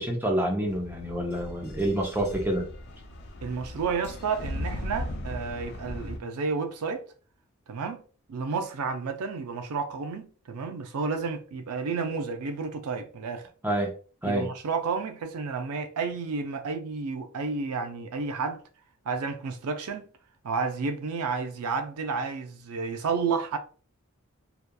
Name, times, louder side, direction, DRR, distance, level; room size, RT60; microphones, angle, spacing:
voice 1, 0.0-2.7 13.6-13.9 14.2-14.5, right 1 dB, 10° right, 0.5 m, -27 dB
sound 1, 0.7-6.2, left 1 dB, 50° left, 0.4 m, -38 dB
voice 2, 3.4-7.0 7.7-8.0 8.3-13.5 14.2-18.6 19.1-20.1 20.4-23.6, right 4 dB, 80° right, 0.4 m, -31 dB
2.8 x 2.3 x 2.2 m
head